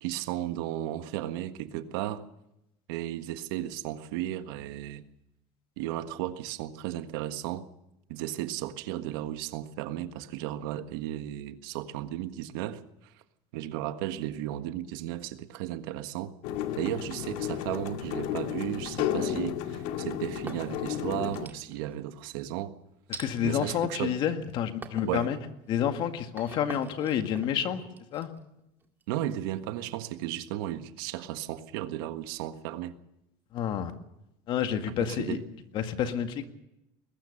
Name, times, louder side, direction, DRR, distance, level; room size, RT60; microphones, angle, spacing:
voice 1, 0.0-2.3 2.9-5.0 5.8-7.7 8.1-13.1 13.5-16.3 16.8-22.7 23.4-24.2 25.0-25.3 29.1-33.0 34.9-35.4, right 13 dB, 85° right, 1.5 m, -34 dB
sound 1, 16.4-21.5, left 10 dB, 65° left, 2.0 m, -33 dB
sound 2, 19.0-19.7 20.2-20.9 21.3-22.0 23.1-23.3 24.0-24.4 24.8-25.2 25.6-29.3, right 4 dB, 15° right, 2.0 m, -45 dB
voice 2, 23.2-25.4 25.7-27.8 28.1-28.3 33.5-33.9 34.5-35.4 35.7-36.4, left 9 dB, 45° left, 1.9 m, -29 dB
21.5 x 19.5 x 6.6 m
cardioid pair, 160°, 12 cm